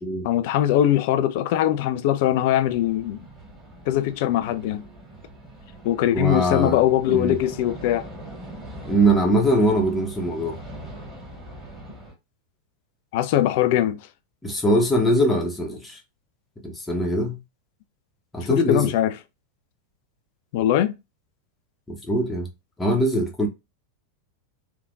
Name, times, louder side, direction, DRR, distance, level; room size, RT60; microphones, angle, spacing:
voice 1, 0.2-3.2 3.9-4.8 5.8-8.1 13.1-14.0 18.5-19.1 20.5-20.9, left 12 dB, 50° left, 0.4 m, -21 dB
sound 1, 2.7-12.1, right 1 dB, 15° right, 1.9 m, -42 dB
voice 2, 6.1-6.8 7.1-7.4 8.8-10.6 14.4-16.0 16.6-17.4 18.3-18.9 21.9-22.5 22.8-23.5, right 1 dB, 10° left, 1.0 m, -22 dB
3.4 x 2.8 x 2.4 m
figure-of-eight pair, 90°, 0 cm